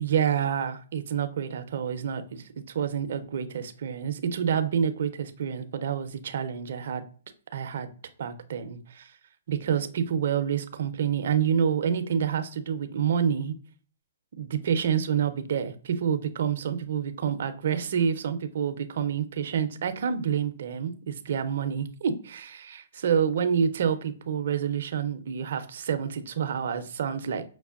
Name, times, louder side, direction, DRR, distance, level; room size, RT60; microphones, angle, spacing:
voice 1, 0.0-7.0 7.5-7.9 8.2-9.1 9.5-13.5 14.4-27.4, right 7 dB, 65° right, 0.5 m, -28 dB
5.8 x 2.1 x 2.4 m
hypercardioid pair, 135°, 0 cm